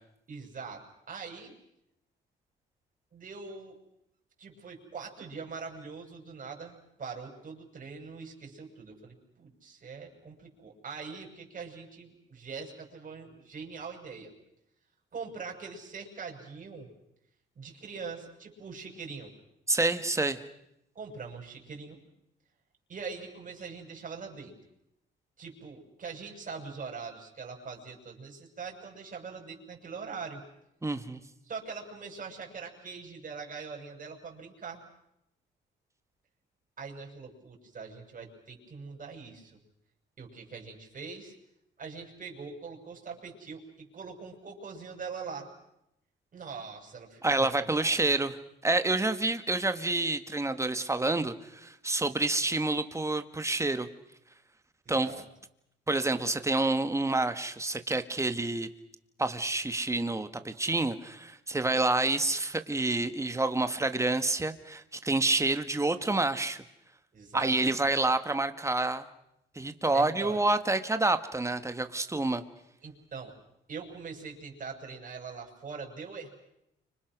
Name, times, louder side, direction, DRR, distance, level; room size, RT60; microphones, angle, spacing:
voice 1, 0.3-1.5 3.1-3.8 4.4-14.3 15.1-16.9 17.5-19.3 20.9-22.0 22.9-24.5 25.4-30.4 31.4-34.8 36.8-39.5 40.2-41.3 41.8-45.5 46.3-48.0 54.8-55.2 67.1-67.5 69.9-70.4 72.8-73.3 73.7-76.3, right 5 dB, 40° right, 1 dB, 6.8 m, -42 dB
voice 2, 19.7-20.4 30.8-31.2 47.2-48.4 48.6-53.9 54.9-55.1 55.9-58.7 59.2-66.6 67.3-69.1 69.6-72.4, right 2 dB, 15° right, 9 dB, 1.9 m, -28 dB
30.0 x 26.0 x 6.3 m, 0.83 s
cardioid pair, 90°, 20 cm